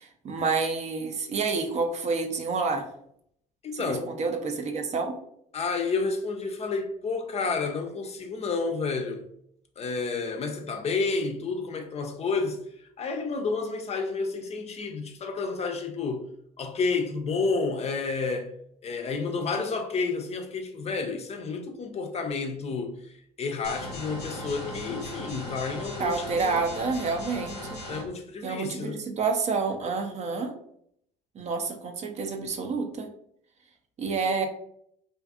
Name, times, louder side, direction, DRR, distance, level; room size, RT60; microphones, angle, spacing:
voice 1, 0.0-2.9 3.7-5.2 26.0-27.8 28.4-30.5 31.3-33.1 34.0-34.5, right 4 dB, 35° right, 0.5 m, -29 dB
voice 2, 3.6-4.1 5.5-9.2 9.8-12.6 13.0-16.3 16.6-18.5 18.8-26.1 26.4-26.7 27.9-29.0, left 4 dB, 35° left, 0.5 m, -30 dB
sound 1, 23.6-28.0, left 1 dB, 90° left, 0.6 m, -38 dB
2.5 x 2.4 x 2.3 m
hypercardioid pair, 60°, 19 cm